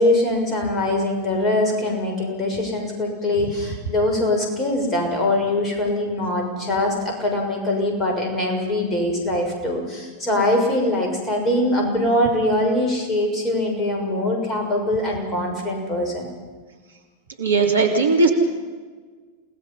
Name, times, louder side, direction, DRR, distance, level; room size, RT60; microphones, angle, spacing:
voice 1, 0.0-16.3, left 1 dB, 20° left, 1 dB, 6.5 m, -22 dB
voice 2, 17.4-18.3, right 3 dB, 75° right, 2 dB, 3.3 m, -18 dB
29.0 x 19.0 x 5.7 m, 1.4 s
figure-of-eight pair, 90°, 0 cm